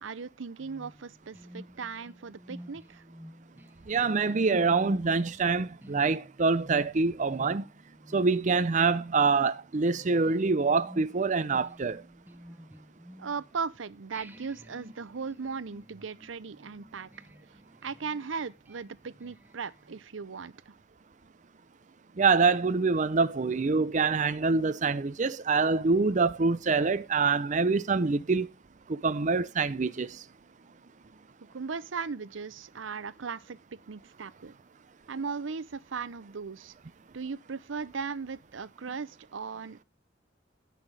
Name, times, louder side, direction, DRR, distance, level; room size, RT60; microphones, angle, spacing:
voice 1, 0.0-3.0 13.2-17.1 17.8-20.7 31.5-33.6 33.9-34.5 35.1-36.7 37.1-39.8, right 5 dB, 85° right, 0.7 m, -37 dB
sound 1, 0.6-13.7 14.1-20.0, equal, 10° right, 1.0 m, -50 dB
voice 2, 3.9-7.6 8.1-12.0 22.2-28.5 28.9-30.2, right 4 dB, 40° right, 0.6 m, -25 dB
17.0 x 5.8 x 3.3 m
head